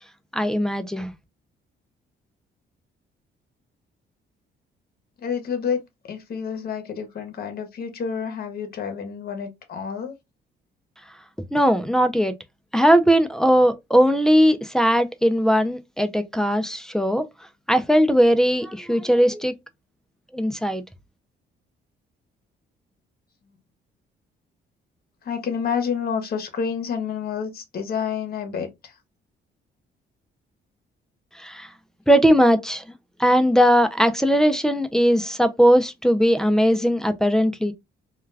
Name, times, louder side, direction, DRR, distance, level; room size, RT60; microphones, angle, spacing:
voice 1, 0.3-1.1 11.5-12.3 12.7-17.2 17.7-19.5 20.3-20.8 31.3-31.7 32.1-32.8 33.2-37.7, equal, 5° left, 0.4 m, -19 dB
voice 2, 5.2-5.8 6.1-10.1 25.2-28.9, left 6 dB, 50° left, 0.9 m, -29 dB
2.3 x 2.2 x 3.2 m
cardioid pair, 90°, 20 cm